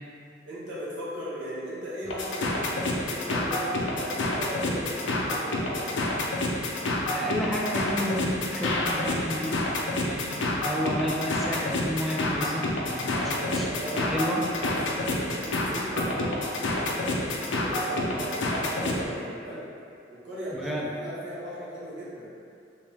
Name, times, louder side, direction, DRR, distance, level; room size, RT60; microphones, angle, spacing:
voice 1, 0.4-6.1 13.1-19.7 20.1-22.3, equal, 80° right, -9 dB, 1.0 m, -37 dB
sound 1, 2.0-19.0, left 2 dB, 90° left, 0.5 m, -28 dB
voice 2, 7.1-9.7 10.0-13.7 13.9-14.4 20.5-20.9, equal, ahead, -3 dB, 0.3 m, -31 dB
3.4 x 3.3 x 2.8 m, 2.5 s
head